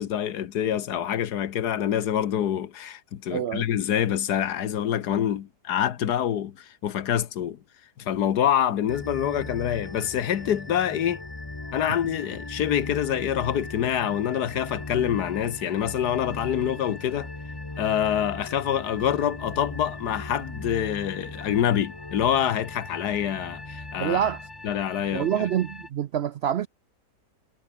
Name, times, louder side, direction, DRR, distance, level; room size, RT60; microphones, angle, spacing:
voice 1, 0.0-7.6 8.0-11.2 11.7-17.3 17.8-24.2 24.6-25.3, left 10 dB, 75° left, 1.6 m, -26 dB
voice 2, 3.3-3.7 24.0-24.5 25.1-26.7, right 10 dB, 85° right, 0.5 m, -26 dB
sound 1, 8.9-25.9, left 2 dB, 15° left, 1.4 m, -39 dB
omnidirectional pair, 1.8 m